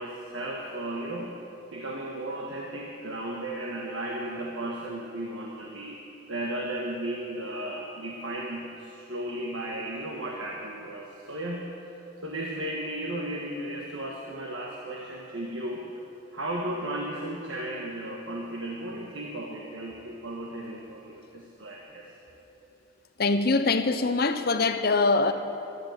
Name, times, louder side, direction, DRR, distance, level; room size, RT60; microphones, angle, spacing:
voice 1, 0.0-1.4 1.7-6.0 6.3-11.6 12.2-15.9 16.3-22.1, right 1 dB, 75° right, 1.5 m, -35 dB
voice 2, 23.2-25.3, left 3 dB, 50° left, 0.7 m, -23 dB
12.0 x 12.0 x 8.0 m
head